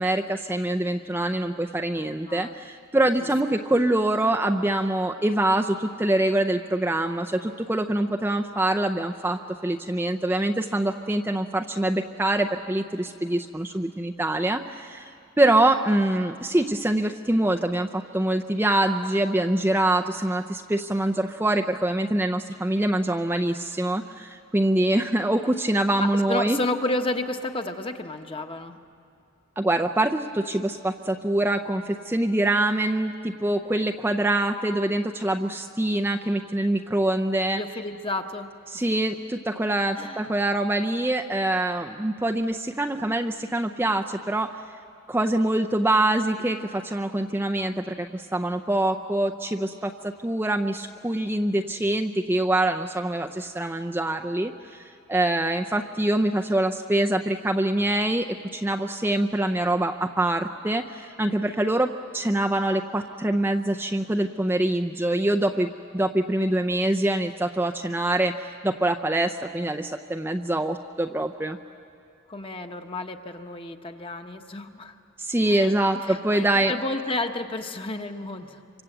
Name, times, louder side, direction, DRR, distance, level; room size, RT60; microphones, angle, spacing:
voice 1, 0.0-26.6 29.6-37.6 38.7-44.6 45.1-71.6 75.2-76.7, right 1 dB, 10° right, 4 dB, 0.5 m, -25 dB
voice 2, 26.0-28.8 37.5-38.5 38.7-38.9 40.0-40.3 72.3-75.0 75.5-75.7 76.0-78.6, left 2 dB, 25° left, 5 dB, 1.2 m, -31 dB
27.0 x 25.0 x 8.0 m, 2.5 s
head